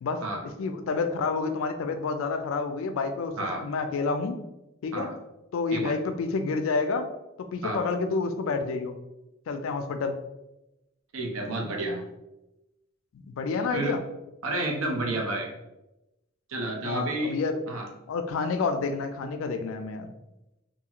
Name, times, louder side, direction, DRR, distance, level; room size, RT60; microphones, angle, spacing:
voice 1, 0.0-4.4 4.8-5.1 5.5-7.1 7.4-9.0 9.5-10.1 13.1-14.0 16.8-17.6 18.1-20.1, left 4 dB, 80° left, 8 dB, 0.3 m, -29 dB
voice 2, 11.1-12.0 13.7-13.9 14.4-15.5 16.5-17.4 17.7-17.9, right 2 dB, 90° right, 1 dB, 0.6 m, -30 dB
2.6 x 2.4 x 2.8 m, 0.95 s
head